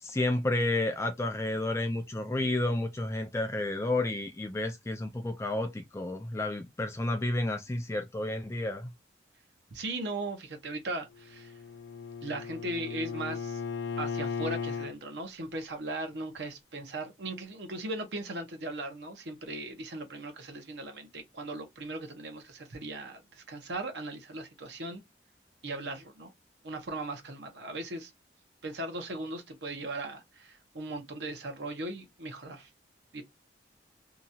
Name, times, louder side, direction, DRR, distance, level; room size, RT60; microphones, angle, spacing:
voice 1, 0.0-8.9, left 2 dB, 15° left, 0.3 m, -31 dB
voice 2, 9.7-11.6 12.2-13.6 14.0-25.0 25.6-26.3 26.6-28.1 28.6-32.7 33.1-33.2, right 2 dB, 70° right, 0.9 m, -38 dB
Bowed string instrument, 11.2-15.0, left 5 dB, 80° left, 0.4 m, -36 dB
2.9 x 2.4 x 2.6 m
head